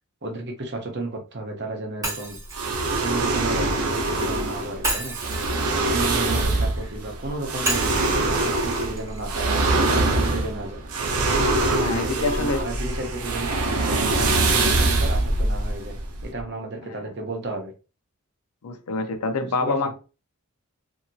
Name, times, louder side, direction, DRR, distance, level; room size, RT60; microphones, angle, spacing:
voice 1, 0.2-2.4 3.0-5.2 5.9-7.9 8.3-9.6 10.1-10.8 11.7-13.6 13.9-17.7 19.6-19.7, right 2 dB, 50° right, 0.8 m, -33 dB
Shatter, 2.0-4.1 4.8-6.9 7.7-9.7, right 2 dB, 15° right, 1.7 m, -32 dB
sound 1, 2.5-16.4, right 2 dB, 85° right, 0.7 m, -23 dB
voice 2, 11.8-12.6 18.6-19.9, left 3 dB, 90° left, 0.5 m, -26 dB
2.8 x 2.7 x 2.6 m
head